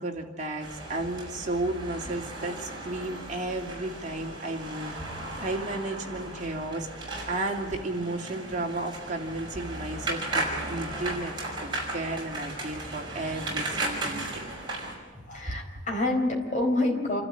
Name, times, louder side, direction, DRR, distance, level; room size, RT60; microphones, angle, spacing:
voice 1, 0.0-4.9 5.4-11.3 11.6-14.5 15.5-15.6, right 2 dB, 40° right, 0 dB, 2.7 m, -33 dB
sound 1, 0.6-15.0, right 2 dB, 25° right, 5.4 m, -36 dB
voice 2, 15.1-17.2, left 2 dB, 40° left, 1 dB, 4.3 m, -27 dB
28.0 x 13.0 x 8.8 m, 1.5 s
head